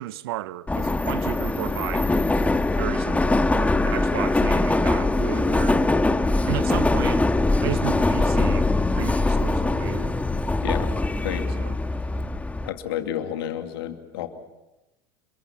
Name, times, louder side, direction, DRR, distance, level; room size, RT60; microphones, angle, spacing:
voice 1, 0.0-5.9 6.5-7.3 7.6-8.7 8.9-10.2 11.6-11.8, right 15 dB, 75° right, 0.8 m, -34 dB
Subway metro underground, 0.7-12.7, left 2 dB, 10° left, 1.5 m, -22 dB
voice 2, 12.6-14.3, left 11 dB, 75° left, 2.4 m, -30 dB
29.5 x 22.5 x 6.0 m
hypercardioid pair, 80°, 13 cm